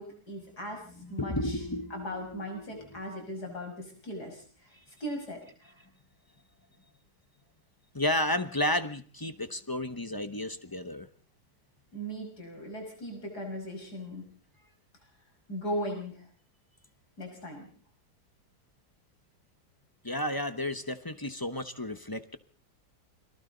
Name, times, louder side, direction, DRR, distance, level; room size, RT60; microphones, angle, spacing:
voice 1, 0.0-0.8 1.1-1.6 1.9-4.4 5.0-5.4 11.9-14.2 15.5-16.2 17.2-17.7, equal, 65° left, 3 dB, 6.4 m, -38 dB
voice 2, 0.9-3.5 7.9-11.1 20.0-22.4, left 1 dB, 20° left, 11 dB, 0.7 m, -33 dB
29.0 x 22.5 x 4.0 m, 0.44 s
omnidirectional pair, 1.8 m